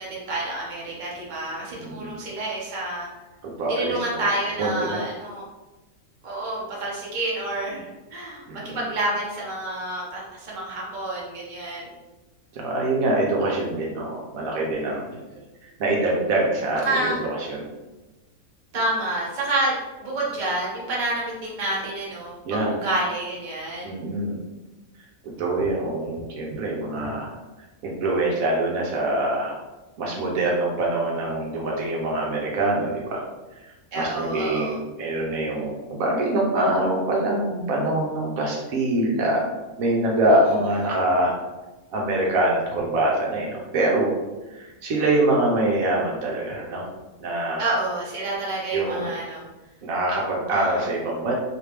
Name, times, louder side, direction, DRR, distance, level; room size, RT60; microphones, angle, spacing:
voice 1, 0.0-3.1 3.7-5.4 6.2-11.9 15.3-15.5 16.8-17.2 18.7-24.0 33.9-34.8 47.6-49.4 50.5-50.8, right 2 dB, 40° right, -4 dB, 0.9 m, -28 dB
voice 2, 1.8-2.2 3.4-4.2 4.6-5.0 8.5-8.8 12.5-15.0 15.8-17.7 22.4-22.7 23.8-24.4 25.4-27.3 27.8-29.6 30.0-33.2 33.6-39.4 39.8-41.3 41.9-44.1 44.5-46.8 47.2-47.6 48.7-49.1 49.8-51.3, right 1 dB, 75° right, -2 dB, 1.1 m, -24 dB
3.3 x 2.8 x 3.2 m, 1.1 s
omnidirectional pair, 1.5 m